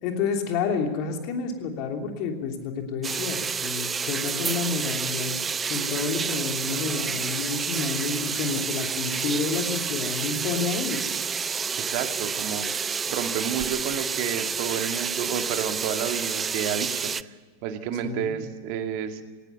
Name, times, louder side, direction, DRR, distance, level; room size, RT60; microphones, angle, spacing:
voice 1, 0.0-5.3 5.7-11.0 18.0-18.4, left 5 dB, 40° left, 4 dB, 3.1 m, -29 dB
sound 1, 3.0-17.2, right 6 dB, 20° right, 0.5 m, -29 dB
voice 2, 11.8-17.3 17.6-19.2, right 8 dB, 45° right, 7 dB, 1.9 m, -31 dB
18.5 x 18.0 x 8.1 m, 1.5 s
figure-of-eight pair, 90°, 0 cm